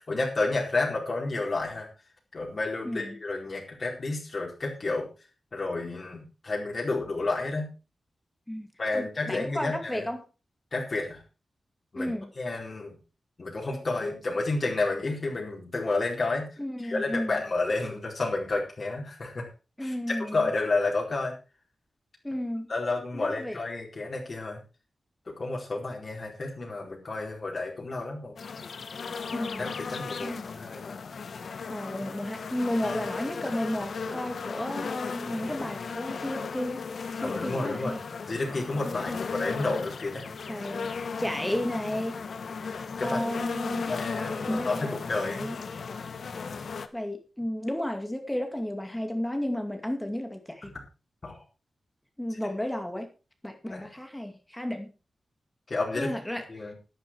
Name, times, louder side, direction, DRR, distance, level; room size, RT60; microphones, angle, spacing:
voice 1, 0.0-1.9 2.3-5.1 5.5-7.7 8.8-10.1 10.7-11.2 11.9-13.0 13.4-16.5 16.8-19.5 19.8-21.3 22.7-24.6 25.3-28.3 29.6-30.9 37.2-37.9 38.3-40.2 43.0-43.3 43.9-45.5 51.2-51.4 52.3-52.4 53.7-53.9 55.7-56.1 56.5-56.7, left 3 dB, 40° left, -2 dB, 4.4 m, -31 dB
voice 2, 2.8-3.2 8.5-8.7 8.9-10.2 12.0-12.3 16.6-17.4 19.8-20.4 22.2-22.7 23.1-23.6 29.3-29.7 30.2-30.4 31.7-36.8 37.2-38.0 38.9-39.2 40.5-40.9 41.2-42.2 43.0-43.9 44.4-45.6 46.9-50.7 52.2-53.1 53.4-54.9 55.9-56.5, left 1 dB, 5° left, 5 dB, 2.3 m, -33 dB
sound 1, 28.4-46.9, left 5 dB, 65° left, 1.4 m, -36 dB
12.0 x 11.5 x 4.7 m, 0.32 s
wide cardioid pair, 145°, 0 cm